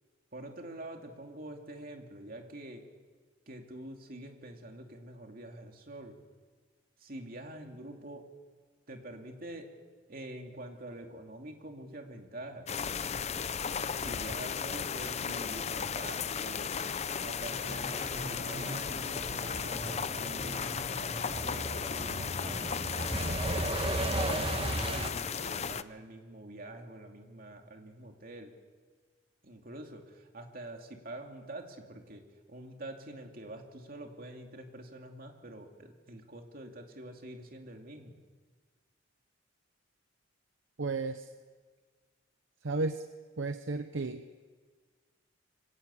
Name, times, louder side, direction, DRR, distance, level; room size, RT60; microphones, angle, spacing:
voice 1, 0.3-2.9 3.5-6.2 7.0-8.2 8.9-9.7 10.1-12.7 13.9-16.7 17.2-20.8 21.4-23.1 23.5-28.5 29.4-32.2 32.5-38.2, right 1 dB, 50° right, 3 dB, 2.6 m, -46 dB
sound 1, 12.7-25.8, left 6 dB, 35° left, 0.6 m, -35 dB
Truck, 17.5-25.1, right 2 dB, 30° right, 1.2 m, -36 dB
voice 2, 40.8-41.3 42.6-43.0 43.4-44.2, right 3 dB, 80° right, 8 dB, 0.8 m, -33 dB
24.5 x 17.5 x 8.4 m, 1.5 s
head